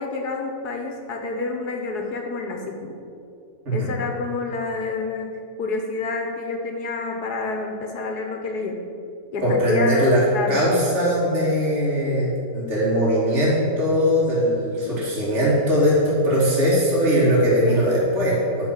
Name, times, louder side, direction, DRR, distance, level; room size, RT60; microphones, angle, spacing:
voice 1, 0.0-3.0 3.7-5.3 5.6-8.8 9.3-10.6, left 3 dB, 65° left, 3 dB, 1.4 m, -28 dB
voice 2, 9.4-18.7, equal, 40° right, -7 dB, 3.1 m, -20 dB
10.5 x 5.9 x 7.3 m, 2.6 s
omnidirectional pair, 1.9 m